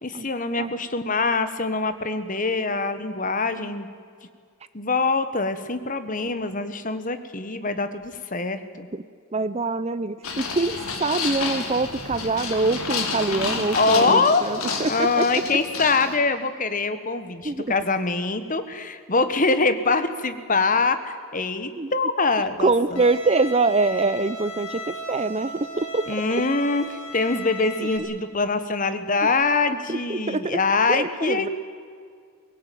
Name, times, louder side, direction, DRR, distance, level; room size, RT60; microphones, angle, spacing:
voice 1, 0.0-3.9 4.7-8.9 13.7-14.4 14.8-23.0 26.1-31.5, left 3 dB, 35° left, 10 dB, 1.4 m, -24 dB
voice 2, 9.3-15.4 17.4-17.7 21.8-21.9 22.6-26.0 27.8-28.1 29.2-29.3 29.9-30.6 30.9-31.5, right 3 dB, 30° right, 15 dB, 0.6 m, -24 dB
Trolley empties slower, 10.2-16.2, left 4 dB, 75° left, 3.2 m, -30 dB
Bowed string instrument, 23.0-28.0, right 1 dB, 60° left, 5.0 m, -36 dB
23.0 x 18.5 x 9.3 m, 2.1 s
head